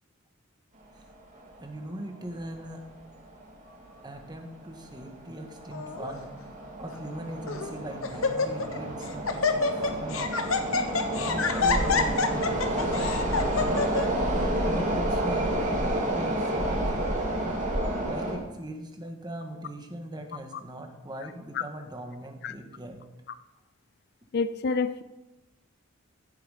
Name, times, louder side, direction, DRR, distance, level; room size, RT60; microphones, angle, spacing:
sound 1, 1.5-1.6 1.8-1.9 2.7-2.9 3.2-3.3 3.9-4.3 4.7-18.4, right 1 dB, 35° right, 2.6 m, -30 dB
voice 1, 1.6-2.8 4.0-6.3 6.8-10.4 11.1-13.9 14.7-17.2 18.0-23.0, right 1 dB, 20° right, 4 dB, 1.5 m, -40 dB
Laughter, 5.7-6.1 6.9-7.0 7.5-7.7 8.0-8.8 9.0-14.1, left 4 dB, 80° left, 1.1 m, -27 dB
voice 2, 24.3-25.0, left 4 dB, 55° left, 13 dB, 0.5 m, -27 dB
15.5 x 7.8 x 5.0 m, 1.0 s
head